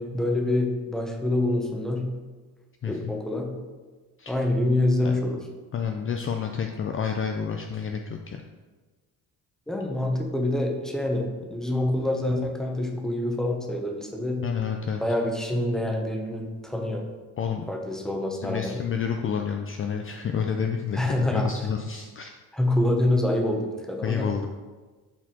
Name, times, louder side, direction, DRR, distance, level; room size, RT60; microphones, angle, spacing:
voice 1, 0.0-2.1 2.8-3.5 4.3-5.4 9.7-14.4 15.0-17.0 17.7-18.8 21.0-21.5 22.5-24.3, left 1 dB, ahead, 2 dB, 0.9 m, -26 dB
voice 2, 2.8-3.1 4.2-4.4 5.0-5.2 5.7-8.4 14.4-15.0 17.4-17.6 18.4-22.3 24.0-24.5, left 7 dB, 35° left, 4 dB, 0.4 m, -29 dB
7.3 x 4.2 x 4.3 m, 1.3 s
cardioid pair, 110°, 36 cm